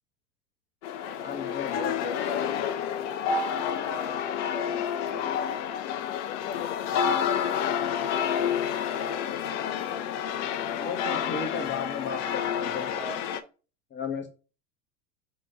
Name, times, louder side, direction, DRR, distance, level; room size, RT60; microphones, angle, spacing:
sound 1, 0.8-13.4, left 8 dB, 50° left, 0.6 m, -29 dB
voice 1, 1.2-2.7 10.7-12.9 13.9-14.3, left 5 dB, 25° left, 3 dB, 1.4 m, -35 dB
voice 2, 4.4-5.3 5.9-6.0 12.0-12.2 12.6-13.2, right 1 dB, ahead, 4 dB, 0.5 m, -44 dB
4.0 x 3.7 x 3.5 m, 0.34 s
figure-of-eight pair, 90°, 47 cm